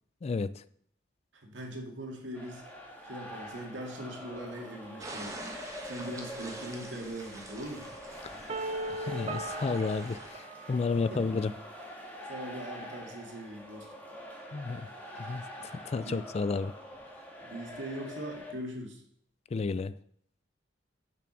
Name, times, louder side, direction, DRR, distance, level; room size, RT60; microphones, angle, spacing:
voice 1, 0.2-0.5 8.2-8.4 8.9-11.5 14.5-14.9 15.2-15.4 15.9-16.7 19.5-19.9, left 4 dB, 35° left, 16 dB, 0.3 m, -31 dB
voice 2, 1.3-2.6 3.0-5.4 5.8-7.9 11.1-11.4 12.3-13.9 15.6-15.8 16.0-16.2 17.4-19.0, right 1 dB, 85° right, 1 dB, 1.9 m, -41 dB
sound 1, 2.3-18.5, equal, 10° left, 1.6 m, -45 dB
sound 2, 5.0-10.3, right 2 dB, 20° right, 1.2 m, -45 dB
sound 3, 8.5-11.4, right 2 dB, 35° right, 0.7 m, -38 dB
7.0 x 6.0 x 6.1 m, 0.66 s
head